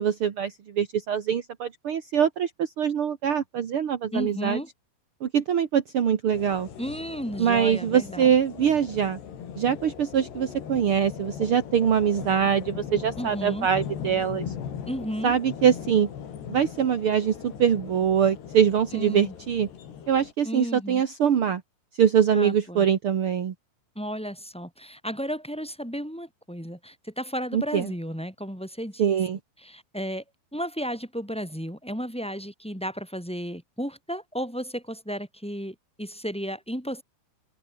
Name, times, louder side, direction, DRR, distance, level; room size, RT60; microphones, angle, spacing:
voice 1, 0.0-4.6 5.2-6.7 7.4-9.2 9.6-14.5 15.2-16.1 16.5-19.7 20.1-21.6 22.0-23.5 27.5-27.9 29.0-29.4, right 8 dB, 55° right, 1.6 m, -23 dB
voice 2, 4.1-4.7 6.8-8.3 13.2-13.7 14.9-15.3 18.9-19.3 20.4-21.0 22.3-22.9 24.0-29.0 29.6-30.2 30.5-37.0, equal, ahead, 7.0 m, -33 dB
sound 1, 6.3-20.3, left 8 dB, 80° left, 5.4 m, -39 dB
omnidirectional pair, 4.7 m